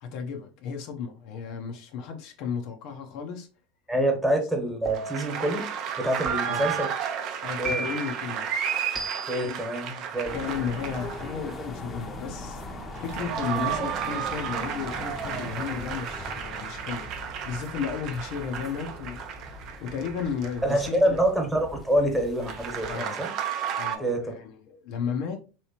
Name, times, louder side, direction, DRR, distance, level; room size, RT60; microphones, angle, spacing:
voice 1, 0.0-3.5 6.4-6.7 7.4-8.5 9.4-9.6 10.0-10.1 10.3-12.6 13.0-17.1 17.4-21.2 22.9-23.2 23.8-25.4, left 6 dB, 60° left, 0.6 m, -34 dB
voice 2, 3.9-5.7 6.0-6.9 7.6-7.8 9.3-10.3 13.6-13.7 20.6-23.3 24.0-24.3, right 1 dB, 5° right, 1.2 m, -26 dB
sound 1, 4.9-5.4 6.3-6.8 7.6-8.2 8.9-9.5, right 4 dB, 30° right, 0.9 m, -33 dB
sound 2, 4.9-11.5 12.8-21.2 22.4-24.0, right 8 dB, 55° right, 0.5 m, -33 dB
sound 3, 10.2-23.0, left 2 dB, 25° left, 0.7 m, -40 dB
3.1 x 2.9 x 2.8 m
hypercardioid pair, 90°, 0 cm